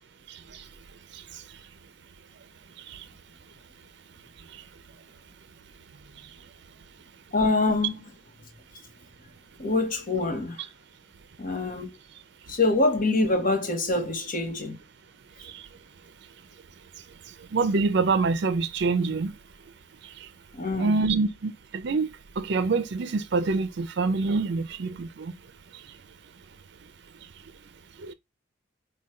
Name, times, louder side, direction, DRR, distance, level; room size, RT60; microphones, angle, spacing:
voice 1, 7.3-8.1 9.6-10.6 11.4-11.9 12.5-14.8 20.5-21.0, left 2 dB, 45° left, 0.9 m, -25 dB
voice 2, 17.5-19.3 20.8-22.1 22.4-25.3 28.0-28.1, right 4 dB, 60° right, 0.5 m, -26 dB
5.0 x 2.2 x 4.2 m
head